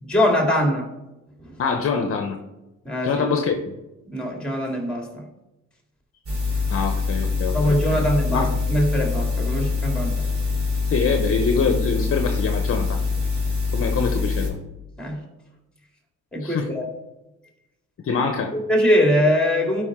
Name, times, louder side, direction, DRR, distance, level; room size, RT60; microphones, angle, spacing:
voice 1, 0.0-0.9 1.5-1.6 2.8-3.3 4.1-5.3 7.5-10.3 15.0-15.2 16.3-16.9 18.5-19.8, equal, 5° left, 1 dB, 2.1 m, -22 dB
voice 2, 1.6-2.4 3.0-3.8 6.7-8.5 10.9-13.0 13.7-14.5 16.4-16.7 18.0-18.5, left 5 dB, 50° left, 5 dB, 0.9 m, -24 dB
sound 1, 6.3-14.5, left 4 dB, 45° right, 3.2 m, -24 dB
12.5 x 4.8 x 3.7 m, 0.99 s
cardioid pair, 90°, 30 cm